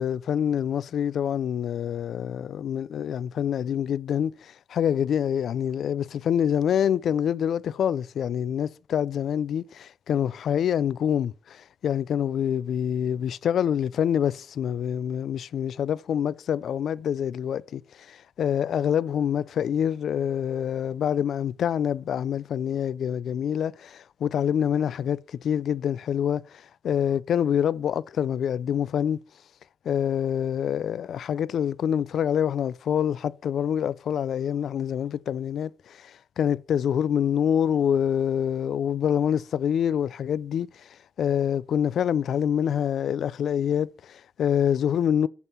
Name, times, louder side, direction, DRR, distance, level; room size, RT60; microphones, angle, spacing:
voice 1, 0.0-29.2 29.9-40.9 41.2-45.3, left 9 dB, 65° left, 0.3 m, -26 dB
8.2 x 5.5 x 5.6 m
cardioid pair, 135°, 0 cm